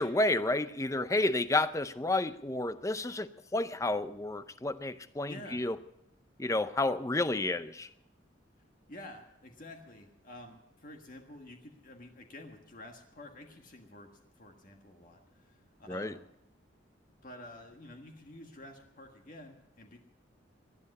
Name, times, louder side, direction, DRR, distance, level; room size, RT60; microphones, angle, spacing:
voice 1, 0.0-5.8 6.4-7.9 15.9-16.1, left 2 dB, 15° left, 13 dB, 0.6 m, -31 dB
voice 2, 5.3-5.6 8.9-14.1 14.4-16.2 17.1-20.0, left 1 dB, 45° left, 3 dB, 1.6 m, -50 dB
19.5 x 12.5 x 5.4 m, 0.81 s
head